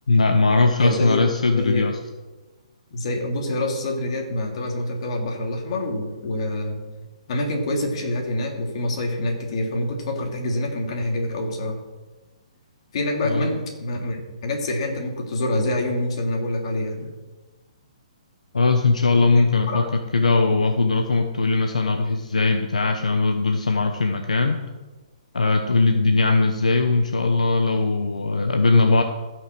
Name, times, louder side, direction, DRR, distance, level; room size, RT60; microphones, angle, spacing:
voice 1, 0.1-2.0 13.2-13.5 18.5-19.8 20.1-24.6 25.3-29.0, left 3 dB, 85° left, 5 dB, 1.0 m, -20 dB
voice 2, 0.8-1.2 1.5-1.9 2.9-6.8 7.3-11.8 12.9-17.1 19.3-19.9, left 1 dB, 55° left, 1 dB, 3.2 m, -26 dB
15.0 x 6.4 x 6.2 m, 1.2 s
hypercardioid pair, 135°, 4 cm